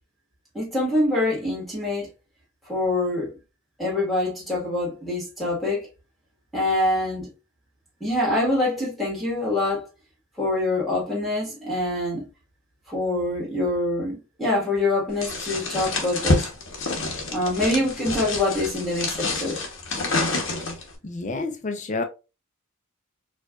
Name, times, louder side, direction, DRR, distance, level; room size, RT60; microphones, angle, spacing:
voice 1, 0.5-2.1 2.7-3.3 3.8-5.8 6.5-7.3 8.0-9.9 10.4-12.3 12.9-16.5 17.3-19.6, left 2 dB, ahead, 1.6 m, -25 dB
sound 1, 15.2-20.9, left 2 dB, 60° left, 0.9 m, -27 dB
voice 2, 21.0-22.0, left 3 dB, 35° left, 0.5 m, -29 dB
4.5 x 2.4 x 2.3 m
head